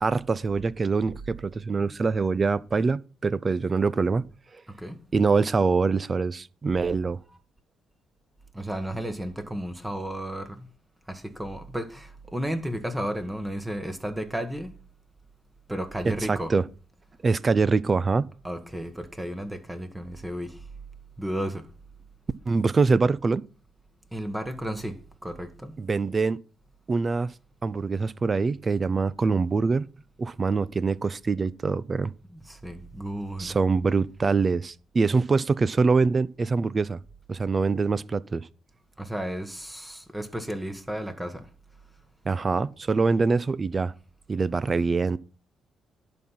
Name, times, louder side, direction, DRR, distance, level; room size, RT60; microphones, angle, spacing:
voice 1, 0.0-4.2 5.1-7.2 16.3-16.6 17.2-18.3 22.5-23.4 25.8-26.4 26.9-27.3 27.6-29.9 30.2-32.1 33.4-37.0 37.3-38.5 42.2-43.9 44.3-45.2, right 4 dB, 35° right, 0.6 m, -24 dB
voice 2, 8.5-10.7 11.1-14.7 15.7-16.5 18.4-20.6 21.2-21.7 24.1-25.7 32.3-33.6 39.0-41.5, right 1 dB, 10° right, 1.5 m, -33 dB
11.0 x 5.5 x 5.8 m
cardioid pair, 90°, 0 cm